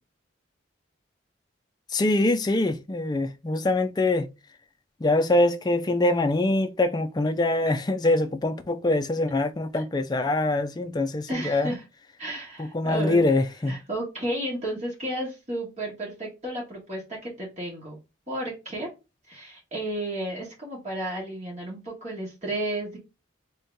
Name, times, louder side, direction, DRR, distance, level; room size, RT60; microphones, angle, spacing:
voice 1, 1.9-4.3 5.0-11.7 12.6-13.8, left 2 dB, 20° left, 0.3 m, -24 dB
voice 2, 11.3-11.8 12.2-13.2 13.7-18.0 18.3-18.9 19.3-23.0, right 1 dB, 35° right, 1.4 m, -32 dB
3.7 x 2.8 x 3.5 m
head